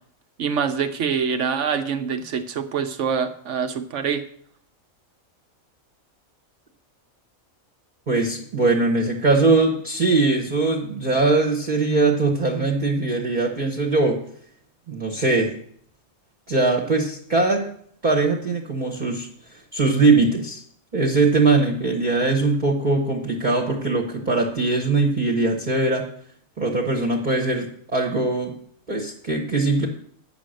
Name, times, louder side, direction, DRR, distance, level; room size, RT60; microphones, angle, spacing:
voice 1, 0.4-4.2, right 6 dB, 65° right, 8 dB, 1.0 m, -25 dB
voice 2, 8.1-14.2 14.9-15.5 16.5-17.7 18.0-19.3 19.7-20.6 20.9-26.0 26.6-28.5 28.9-29.9, right 3 dB, 35° right, -1 dB, 1.1 m, -21 dB
8.8 x 5.8 x 6.4 m, 0.62 s
omnidirectional pair, 1.4 m